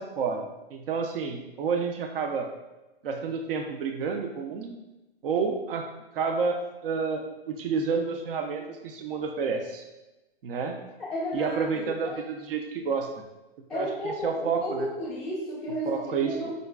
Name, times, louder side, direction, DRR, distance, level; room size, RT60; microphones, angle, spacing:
voice 1, 0.0-2.5 3.0-4.8 5.2-5.9 6.1-9.8 10.4-10.8 11.3-13.2 13.7-14.9 15.9-16.4, right 5 dB, 65° right, 4 dB, 0.5 m, -30 dB
voice 2, 11.0-12.2 13.7-16.5, equal, ahead, -14 dB, 0.4 m, -33 dB
5.0 x 2.3 x 2.2 m, 1.0 s
hypercardioid pair, 170°, 31 cm